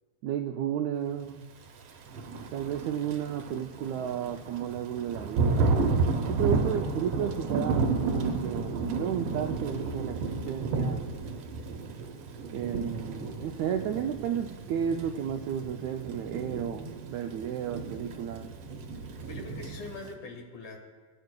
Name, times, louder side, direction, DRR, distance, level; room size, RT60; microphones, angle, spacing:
voice 1, 0.2-1.5 2.5-10.2 10.5-11.0 12.5-18.5, right 9 dB, 85° right, 5 dB, 1.6 m, -33 dB
Thunder / Rain, 2.0-20.1, right 4 dB, 65° right, 1.6 m, -32 dB
voice 2, 19.3-20.8, left 3 dB, 70° left, 2 dB, 2.8 m, -42 dB
20.5 x 10.0 x 2.2 m, 1.5 s
omnidirectional pair, 3.7 m